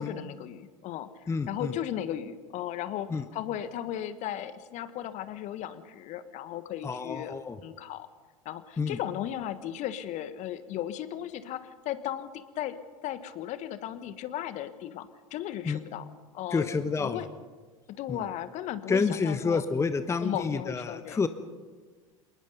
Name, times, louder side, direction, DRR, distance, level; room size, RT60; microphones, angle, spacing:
voice 1, 0.0-7.3 7.6-8.1 8.4-16.1 16.3-16.7 17.0-17.3 17.9-19.6 20.2-21.2, left 11 dB, 45° left, 13 dB, 1.4 m, -36 dB
voice 2, 1.3-1.7 3.1-3.2 6.8-7.6 8.8-9.0 15.6-15.8 16.5-17.2 18.1-18.2 18.9-21.3, left 4 dB, 15° left, 11 dB, 1.0 m, -29 dB
27.5 x 19.5 x 5.5 m, 1.4 s
figure-of-eight pair, 80°, 18 cm